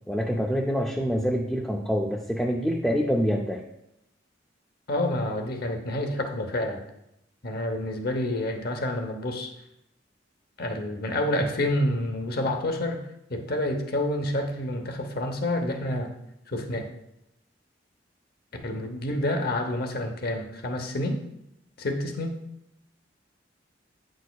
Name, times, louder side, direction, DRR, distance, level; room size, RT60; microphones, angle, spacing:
voice 1, 0.1-3.6, equal, ahead, -1 dB, 0.5 m, -26 dB
voice 2, 4.9-6.8 7.4-9.5 10.6-13.0 13.3-16.1 16.5-16.9 18.6-21.2 21.8-22.4, left 1 dB, 55° left, 5 dB, 0.9 m, -28 dB
9.2 x 6.5 x 2.3 m, 0.82 s
head